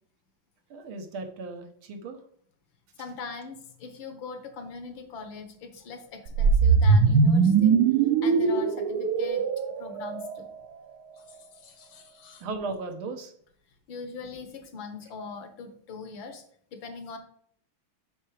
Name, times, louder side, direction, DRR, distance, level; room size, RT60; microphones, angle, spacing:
voice 1, 0.7-2.2 12.4-13.3, right 3 dB, 85° right, 6 dB, 1.9 m, -36 dB
voice 2, 3.0-7.8 8.2-9.4 9.8-10.5 11.2-12.4 13.9-16.4 16.7-17.2, left 4 dB, 70° left, 7 dB, 1.9 m, -41 dB
sound 1, 6.3-10.6, right 5 dB, 65° right, 1.1 m, -21 dB
7.4 x 5.9 x 4.8 m, 0.62 s
omnidirectional pair, 2.2 m